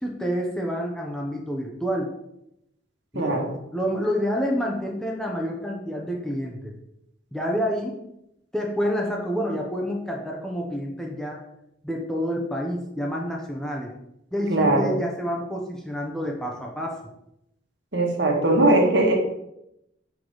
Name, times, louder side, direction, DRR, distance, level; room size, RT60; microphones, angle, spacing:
voice 1, 0.0-2.1 3.1-6.7 7.3-8.0 8.5-11.4 11.8-13.9 14.3-17.0, equal, 5° left, -1 dB, 0.7 m, -28 dB
voice 2, 3.1-3.5 14.5-14.9 17.9-19.1, right 2 dB, 65° right, 0 dB, 1.4 m, -20 dB
5.7 x 4.8 x 3.8 m, 0.83 s
head